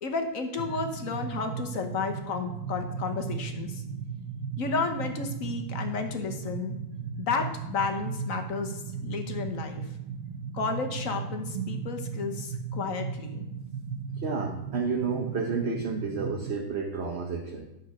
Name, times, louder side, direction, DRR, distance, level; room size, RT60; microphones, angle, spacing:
voice 1, 0.0-3.8 4.6-6.8 7.2-9.9 10.5-13.5, left 4 dB, 55° left, 6 dB, 1.3 m, -32 dB
sound 1, 0.6-16.5, right 5 dB, 80° right, 1.3 m, -36 dB
voice 2, 14.2-17.6, right 4 dB, 45° right, 2 dB, 1.0 m, -31 dB
9.7 x 6.8 x 5.1 m, 0.89 s
omnidirectional pair, 1.8 m